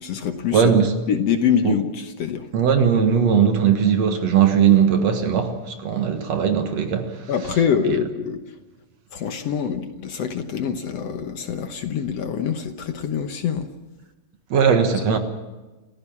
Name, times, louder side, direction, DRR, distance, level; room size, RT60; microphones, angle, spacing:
voice 1, 0.0-0.8 1.1-2.5 7.3-8.4 9.1-13.7, left 8 dB, 65° left, 2.0 m, -25 dB
voice 2, 0.5-0.9 1.6-1.7 2.5-7.3 7.9-8.0 14.5-15.2, right 7 dB, 60° right, 2.6 m, -19 dB
29.5 x 15.0 x 7.3 m
omnidirectional pair, 3.6 m